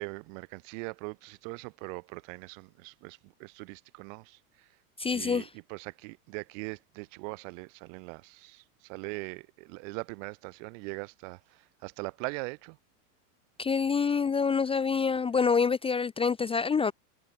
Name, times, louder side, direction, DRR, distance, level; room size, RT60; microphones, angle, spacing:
voice 1, 0.0-4.4 5.1-12.8, right 36 dB, 55° right, 4.3 m, -41 dB
voice 2, 5.0-5.5 13.6-16.9, left 5 dB, 10° left, 0.8 m, -26 dB
supercardioid pair, 135°, 46 cm